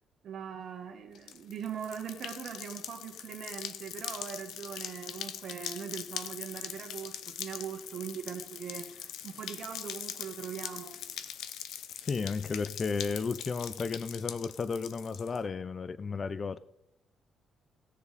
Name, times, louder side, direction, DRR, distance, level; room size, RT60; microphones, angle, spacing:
voice 1, 0.2-11.0, right 8 dB, 65° right, 3 dB, 1.4 m, -41 dB
sound 1, 1.1-15.4, left 9 dB, 80° left, 0.6 m, -42 dB
voice 2, 12.1-16.6, left 5 dB, 40° left, 16 dB, 0.5 m, -33 dB
18.0 x 7.1 x 4.1 m, 0.81 s
cardioid pair, 90°, 0 cm